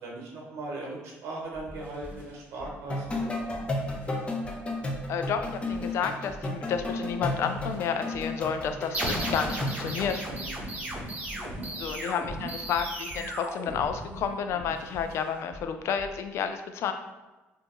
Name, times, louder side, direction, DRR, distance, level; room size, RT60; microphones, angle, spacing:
voice 1, 0.0-3.4 10.2-11.0 11.3-11.8 14.5-14.7, right 2 dB, 70° right, -2 dB, 0.9 m, -40 dB
sound 1, 1.5-16.2, equal, 40° left, 1.5 m, -46 dB
sound 2, 2.9-9.9, left 2 dB, 20° left, 0.6 m, -33 dB
voice 2, 5.1-10.2 11.8-16.9, left 7 dB, 65° left, 7 dB, 0.4 m, -31 dB
sound 3, 8.9-14.4, right 1 dB, 30° right, 0.8 m, -35 dB
2.6 x 2.5 x 3.7 m, 1.1 s
cardioid pair, 95°, 5 cm